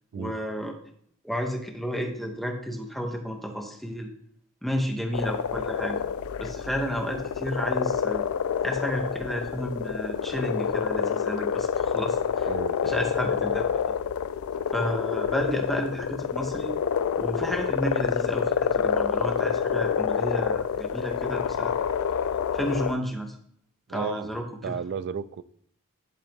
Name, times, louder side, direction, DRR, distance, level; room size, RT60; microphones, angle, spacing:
voice 1, 0.1-0.7 1.2-4.1 4.6-6.0 6.4-8.2 8.6-12.5 12.8-13.8 14.7-16.7 17.2-21.8 22.5-23.3 23.9-24.7, equal, ahead, 0.8 m, -31 dB
sound 1, 5.1-22.9, left 7 dB, 70° left, 0.3 m, -28 dB
voice 2, 12.4-13.0 23.9-24.3 24.6-25.4, right 6 dB, 55° right, 0.3 m, -33 dB
10.5 x 3.6 x 3.5 m
head